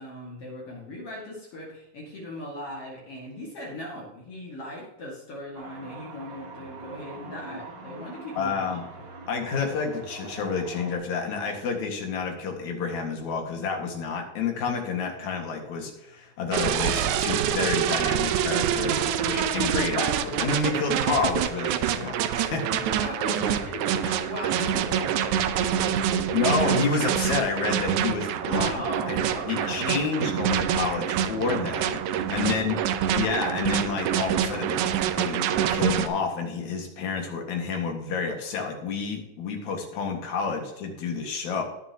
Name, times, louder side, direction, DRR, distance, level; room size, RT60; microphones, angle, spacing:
voice 1, 0.0-9.0 18.8-19.3 22.8-25.7 26.0-26.5 28.4-30.0 32.3-32.7, left 1 dB, 50° left, -4 dB, 2.7 m, -38 dB
sound 1, 5.5-11.0, right 2 dB, 45° right, 1.7 m, -43 dB
voice 2, 8.3-8.8 9.3-22.8 26.3-28.8 29.1-32.8 33.1-34.8 35.2-35.4 35.7-41.6, left 5 dB, 65° left, 2 dB, 3.0 m, -29 dB
sound 2, 16.5-36.1, right 9 dB, 75° right, 2.0 m, -26 dB
19.0 x 6.9 x 2.9 m, 0.93 s
omnidirectional pair, 3.6 m